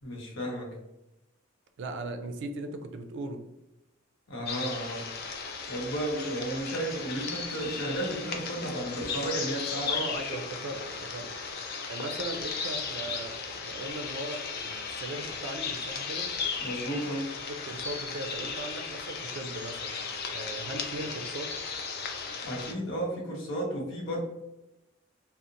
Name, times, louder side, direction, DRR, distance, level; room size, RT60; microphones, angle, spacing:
voice 1, 0.0-0.7 4.3-5.0 5.7-10.0 16.6-17.3 22.4-24.2, right 1 dB, 85° left, -1 dB, 0.8 m, -33 dB
voice 2, 1.8-3.5 9.9-11.3 11.9-16.3 17.5-21.5, right 2 dB, 65° right, 7 dB, 0.3 m, -38 dB
sound 1, 4.5-22.7, left 5 dB, 55° left, 0.4 m, -36 dB
2.8 x 2.0 x 2.5 m, 0.92 s
head